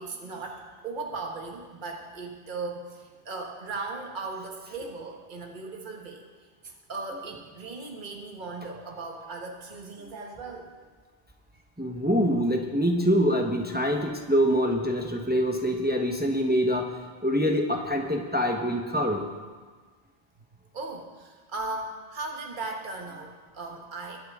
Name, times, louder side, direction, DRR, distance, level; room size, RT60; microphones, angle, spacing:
voice 1, 0.0-6.2 6.9-10.7 20.7-24.2, right 3 dB, 50° right, 1 dB, 1.4 m, -37 dB
voice 2, 11.8-16.9 17.2-19.2, equal, 10° right, 2 dB, 0.9 m, -25 dB
22.0 x 8.7 x 3.6 m, 1.4 s
omnidirectional pair, 1.1 m